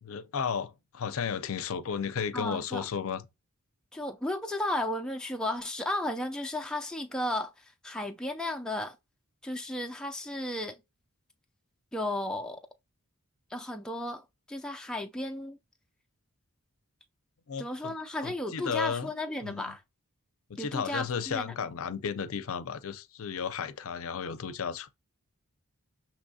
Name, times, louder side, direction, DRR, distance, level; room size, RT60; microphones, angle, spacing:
voice 1, 0.0-3.2 17.5-17.9 18.2-19.1 19.4-19.7 20.5-24.9, left 6 dB, 65° left, 0.5 m, -34 dB
voice 2, 2.3-2.9 3.9-9.0 9.4-10.8 11.9-12.6 13.5-15.6 17.6-19.8 20.6-21.5, left 1 dB, 5° left, 0.3 m, -34 dB
6.3 x 2.9 x 2.7 m
head